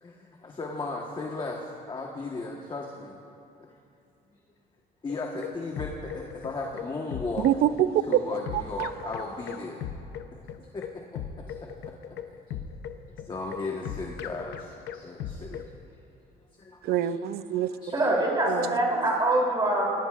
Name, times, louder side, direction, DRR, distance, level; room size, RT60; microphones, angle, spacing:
voice 1, 0.0-1.6 1.9-3.2 5.0-7.5 8.1-9.9 10.6-11.2 11.5-11.7 13.3-15.6 16.6-16.9 17.8-18.3, left 3 dB, 30° left, 0 dB, 1.4 m, -36 dB
sound 1, 5.1-15.7, left 8 dB, 80° left, 0.8 m, -38 dB
voice 2, 7.4-8.2 8.5-8.9 16.8-17.7 18.5-18.8, right 11 dB, 70° right, 13 dB, 0.6 m, -25 dB
voice 3, 17.9-19.9, right 1 dB, 25° right, -2 dB, 3.4 m, -24 dB
23.5 x 19.5 x 2.5 m, 2.7 s
cardioid pair, 110°, 17 cm